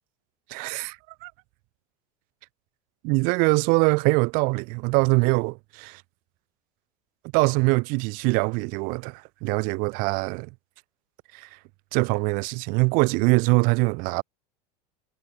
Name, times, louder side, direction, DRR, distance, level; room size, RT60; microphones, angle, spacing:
voice 1, 0.5-1.3 3.0-6.0 7.3-10.5 11.3-11.5 11.9-14.2, right 29 dB, 50° right, 5.8 m, -23 dB
supercardioid pair, 165°, 18 cm